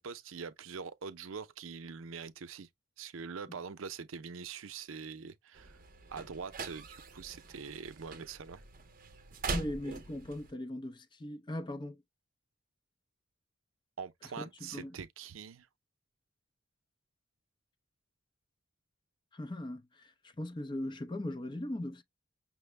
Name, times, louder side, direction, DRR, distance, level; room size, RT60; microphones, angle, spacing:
voice 1, 0.0-2.7 3.0-5.8 6.1-8.6 14.0-15.7, right 5 dB, 85° right, 0.6 m, -44 dB
sound 1, 5.5-10.5, right 4 dB, 45° right, 0.6 m, -42 dB
voice 2, 9.5-12.0 14.4-15.0 19.3-22.0, left 1 dB, 20° left, 0.5 m, -39 dB
6.0 x 2.0 x 3.2 m
head